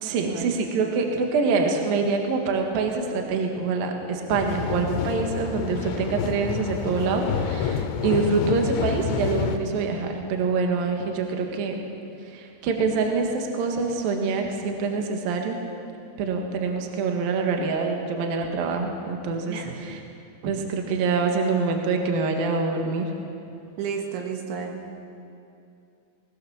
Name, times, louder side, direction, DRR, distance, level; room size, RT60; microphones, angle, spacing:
voice 1, 0.0-11.8 12.3-15.6 16.2-20.0 20.4-23.1, right 4 dB, 60° right, 3 dB, 3.1 m, -25 dB
sound 1, 4.3-9.6, left 7 dB, 85° left, 3.4 m, -28 dB
voice 2, 23.8-24.8, right 6 dB, 80° right, 2 dB, 4.0 m, -32 dB
20.0 x 19.0 x 7.1 m, 2.7 s
omnidirectional pair, 5.3 m